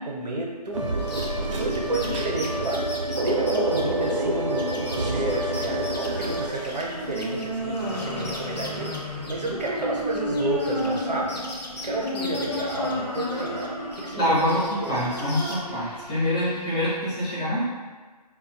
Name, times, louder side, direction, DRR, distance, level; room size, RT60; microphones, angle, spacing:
voice 1, 0.1-1.0 1.3-11.4 11.8-14.9, right 2 dB, 85° right, -1 dB, 0.7 m, -31 dB
sound 1, 0.7-6.5, right 1 dB, 50° right, 0.4 m, -27 dB
sound 2, 1.0-7.5 7.7-11.0 11.3-13.7 13.9-15.6, left 1 dB, 80° left, 0.6 m, -40 dB
sound 3, 5.7-16.9, equal, 40° left, 1.0 m, -32 dB
voice 2, 14.2-17.6, left 1 dB, 10° left, -12 dB, 0.5 m, -25 dB
2.4 x 2.3 x 2.6 m, 1.4 s
figure-of-eight pair, 155°, 21 cm